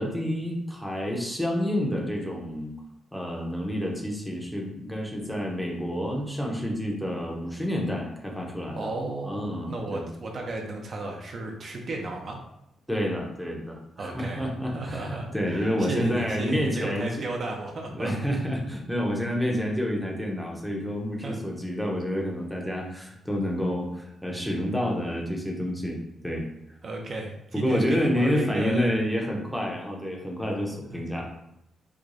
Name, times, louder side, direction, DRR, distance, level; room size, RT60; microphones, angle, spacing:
voice 1, 0.0-2.7 3.1-8.9 9.2-10.1 12.9-17.1 17.9-26.0 26.2-26.5 27.5-31.3, equal, ahead, -1 dB, 0.7 m, -29 dB
voice 2, 8.7-12.4 14.0-18.1 21.2-21.4 26.8-28.9 30.9-31.0, right 2 dB, 45° right, 1 dB, 0.6 m, -34 dB
4.6 x 2.2 x 2.6 m, 0.86 s
cardioid pair, 125°, 0 cm